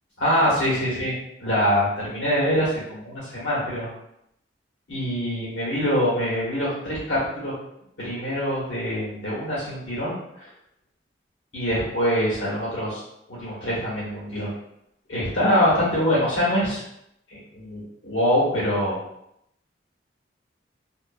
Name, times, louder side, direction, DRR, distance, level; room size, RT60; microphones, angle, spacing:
voice 1, 0.2-1.1 1.4-3.9 4.9-7.5 8.0-10.5 11.5-13.0 13.3-14.5 15.1-16.8 17.5-19.0, equal, 90° left, -8 dB, 1.4 m, -24 dB
2.6 x 2.5 x 2.4 m, 0.78 s
head